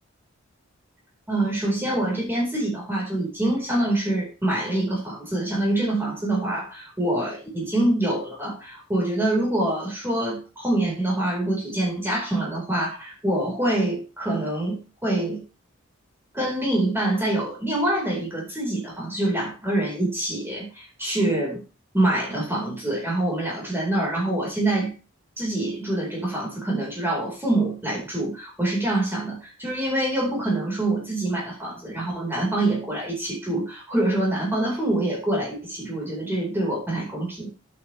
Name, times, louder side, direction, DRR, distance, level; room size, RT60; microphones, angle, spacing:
voice 1, 1.3-15.4 16.3-21.6 21.9-24.9 25.4-37.5, right 1 dB, 10° right, -4 dB, 4.9 m, -25 dB
10.5 x 9.5 x 3.5 m, 0.32 s
head